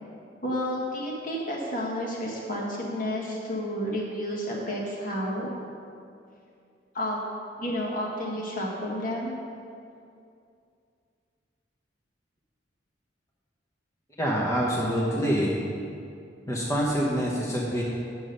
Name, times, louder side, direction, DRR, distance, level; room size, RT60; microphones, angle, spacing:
voice 1, 0.4-5.5 6.9-7.2 7.6-9.4, equal, 50° left, -3 dB, 1.7 m, -31 dB
voice 2, 14.2-15.6 16.5-17.8, equal, 20° left, -5 dB, 0.9 m, -26 dB
8.5 x 6.4 x 5.4 m, 2.5 s
head